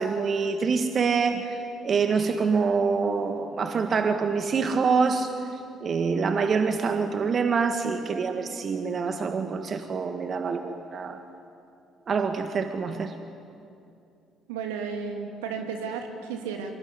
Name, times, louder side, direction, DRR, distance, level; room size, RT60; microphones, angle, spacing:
voice 1, 0.0-11.2 12.1-13.2, right 5 dB, 45° right, 7 dB, 1.8 m, -26 dB
voice 2, 14.5-16.8, right 5 dB, 80° right, 4 dB, 2.8 m, -33 dB
25.5 x 23.0 x 9.8 m, 2.6 s
hypercardioid pair, 50°, 0 cm